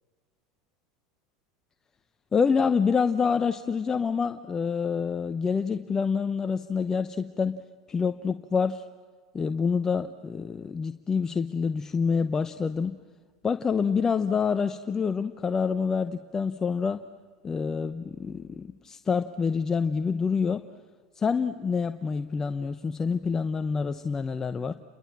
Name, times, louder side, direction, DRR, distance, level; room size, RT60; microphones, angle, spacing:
voice 1, 2.3-7.6 7.9-8.9 9.3-13.0 13.4-17.0 17.4-20.7 21.1-24.7, left 5 dB, 25° left, 9 dB, 0.9 m, -27 dB
29.5 x 23.0 x 7.6 m, 1.5 s
hypercardioid pair, 80°, 2 cm